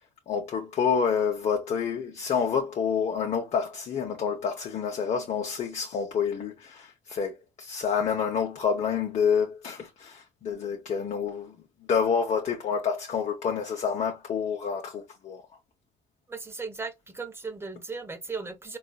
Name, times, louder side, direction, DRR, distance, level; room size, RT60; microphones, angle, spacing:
voice 1, 0.3-11.5 11.9-15.4, left 6 dB, 55° left, 0.7 m, -28 dB
voice 2, 16.3-18.8, right 4 dB, 15° right, 0.7 m, -37 dB
3.8 x 2.4 x 2.2 m
cardioid pair, 85°, 14 cm